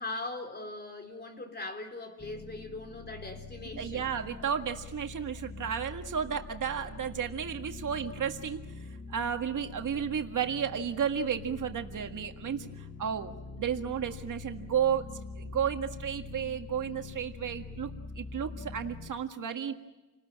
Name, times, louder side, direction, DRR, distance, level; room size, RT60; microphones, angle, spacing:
voice 1, 0.0-4.1, left 2 dB, 35° left, 5 dB, 3.7 m, -40 dB
sound 1, 2.2-19.1, left 3 dB, 50° left, 3.9 m, -44 dB
voice 2, 3.8-8.7 9.1-15.1 15.4-19.7, right 8 dB, 85° right, 5 dB, 1.8 m, -33 dB
29.5 x 20.0 x 8.8 m, 1.1 s
wide cardioid pair, 125°, 31 cm